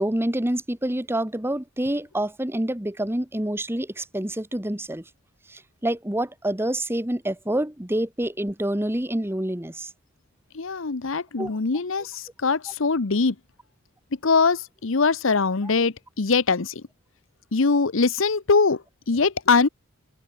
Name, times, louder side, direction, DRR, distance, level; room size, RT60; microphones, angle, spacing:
voice 1, 0.0-5.0 5.5-9.9 11.4-11.5 15.6-15.7, right 1 dB, 10° right, 1.4 m, -27 dB
voice 2, 10.5-13.3 14.2-16.8 17.5-19.7, left 4 dB, 65° left, 0.9 m, -22 dB
head